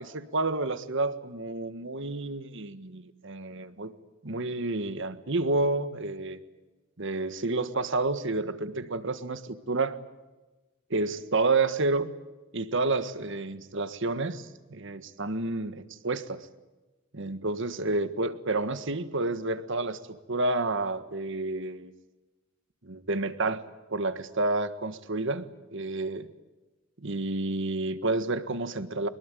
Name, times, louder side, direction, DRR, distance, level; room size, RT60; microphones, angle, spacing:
voice 1, 0.0-3.9 4.2-6.4 7.0-10.0 10.9-12.1 12.5-16.5 17.1-21.9 22.8-23.6 23.9-26.3 27.0-29.1, right 2 dB, 60° right, 12 dB, 1.6 m, -30 dB
24.0 x 21.5 x 9.2 m, 1.1 s
head